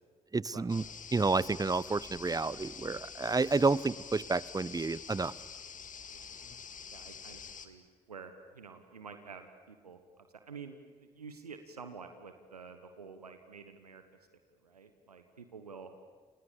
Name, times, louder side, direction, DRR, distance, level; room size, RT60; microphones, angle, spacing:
voice 1, 0.3-0.8 1.1-5.3, right 3 dB, 20° right, 21 dB, 0.8 m, -30 dB
sound 1, 0.7-7.7, left 6 dB, 45° left, 2.2 m, -47 dB
voice 2, 6.9-14.0 14.5-15.9, right 5 dB, 85° right, 8 dB, 1.4 m, -49 dB
30.0 x 27.0 x 7.1 m, 1.5 s
figure-of-eight pair, 40°, 19 cm